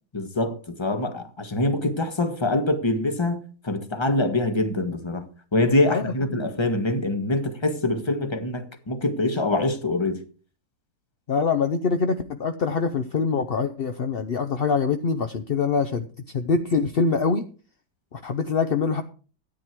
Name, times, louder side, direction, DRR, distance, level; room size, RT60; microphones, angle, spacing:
voice 1, 0.1-5.3 5.5-10.2, left 2 dB, 15° left, 1.3 m, -24 dB
voice 2, 11.3-16.1 16.3-17.5 18.1-19.0, left 5 dB, 50° left, 0.7 m, -24 dB
13.5 x 9.7 x 4.6 m
omnidirectional pair, 1.9 m